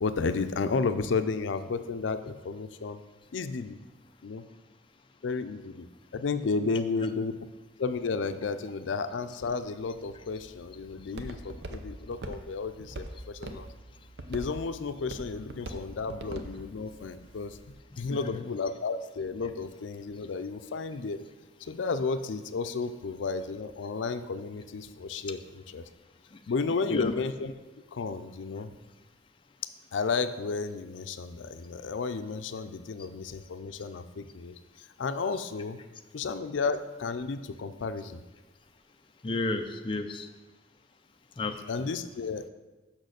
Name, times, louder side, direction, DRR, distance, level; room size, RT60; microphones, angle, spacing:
voice 1, 0.0-3.0 3.3-3.8 4.2-4.4 5.2-5.9 6.1-7.3 7.8-13.7 14.3-17.6 18.0-21.2 21.6-25.4 25.7-25.8 26.5-27.5 27.9-28.7 29.9-35.8 36.1-38.2 41.7-42.5, left 4 dB, 85° left, 10 dB, 0.5 m, -32 dB
Walk footsteps, 9.8-17.7, right 1 dB, 65° right, 0.7 m, -44 dB
voice 2, 17.9-18.4 25.3-25.4 26.3-26.4 26.9-27.1 39.2-40.3 41.4-41.9, left 2 dB, 25° left, 5 dB, 0.4 m, -33 dB
6.5 x 5.9 x 6.4 m, 1.2 s
head